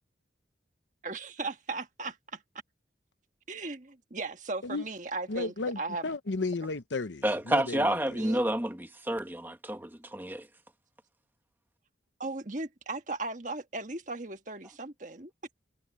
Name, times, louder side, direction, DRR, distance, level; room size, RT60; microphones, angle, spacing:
voice 1, 1.0-2.4 3.5-6.1 8.1-8.4 12.2-15.3, right 3 dB, 40° right, 1.5 m, -37 dB
voice 2, 5.3-8.0, left 3 dB, 80° left, 0.9 m, -34 dB
voice 3, 7.2-10.5, right 1 dB, 10° right, 1.0 m, -29 dB
head